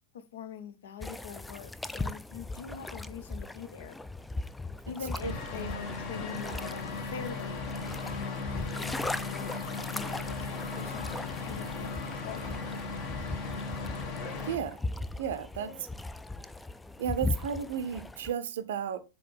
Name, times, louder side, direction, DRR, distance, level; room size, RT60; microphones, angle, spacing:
voice 1, 0.1-4.0 4.9-7.6 8.1-12.8, left 7 dB, 60° left, 0.7 m, -44 dB
sound 1, 1.0-18.3, left 2 dB, 5° left, 0.3 m, -39 dB
sound 2, 5.2-14.6, left 4 dB, 40° left, 1.1 m, -37 dB
voice 2, 14.4-14.8 15.2-15.9 17.0-19.0, right 8 dB, 60° right, 0.5 m, -33 dB
7.6 x 4.2 x 3.3 m
figure-of-eight pair, 90°, 0 cm